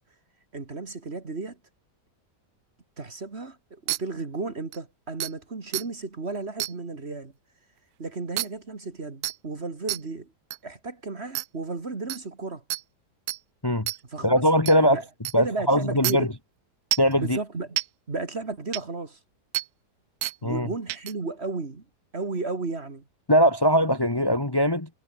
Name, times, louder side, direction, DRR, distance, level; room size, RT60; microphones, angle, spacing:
voice 1, 0.5-1.6 3.0-7.3 8.0-10.3 10.6-12.6 14.1-15.1 15.4-16.3 17.2-17.8 18.1-19.2 20.4-21.8 22.1-23.0, right 3 dB, 40° right, 2.4 m, -33 dB
sound 1, 3.9-4.0 4.7-4.8 5.2-5.3 5.7-5.8 6.6-6.7 8.4-8.5 9.2-9.4 9.9-10.0 10.5-10.6 11.4-11.5 12.1-12.2 12.7-12.8 13.3-13.4 13.9-14.0 14.7-14.8 15.3-15.4 16.0-16.1 16.9-17.1 17.8-17.9 18.7-18.8 19.5-19.7 20.2-20.4 20.9-21.1, right 16 dB, 70° right, 1.0 m, -28 dB
voice 2, 14.2-15.0 15.3-16.3 17.0-17.4 20.4-20.7 23.3-24.9, equal, 15° left, 1.5 m, -21 dB
omnidirectional pair, 1.8 m